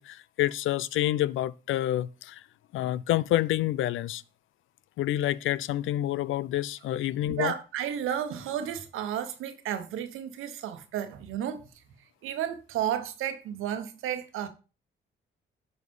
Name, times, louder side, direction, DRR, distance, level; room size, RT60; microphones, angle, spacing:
voice 1, 0.0-2.4 2.7-4.2 5.0-7.5, left 13 dB, 80° left, 0.5 m, -28 dB
voice 2, 7.3-14.5, right 10 dB, 90° right, 1.2 m, -33 dB
10.5 x 4.2 x 5.4 m
supercardioid pair, 65°, 21 cm